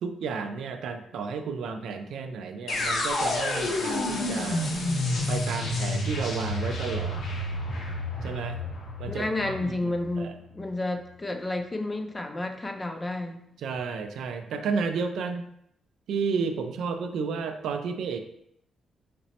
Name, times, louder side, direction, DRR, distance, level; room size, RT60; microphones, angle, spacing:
voice 1, 0.0-4.7 5.3-7.3 8.2-8.6 9.0-9.9 10.2-10.4 13.6-15.4 16.1-18.2, right 5 dB, 80° right, 6 dB, 0.3 m, -32 dB
sound 1, 2.7-10.6, left 1 dB, 70° left, 0.7 m, -30 dB
voice 2, 9.1-13.4, left 2 dB, 20° left, 5 dB, 0.4 m, -31 dB
5.0 x 2.0 x 2.8 m, 0.74 s
cardioid pair, 115°, 0 cm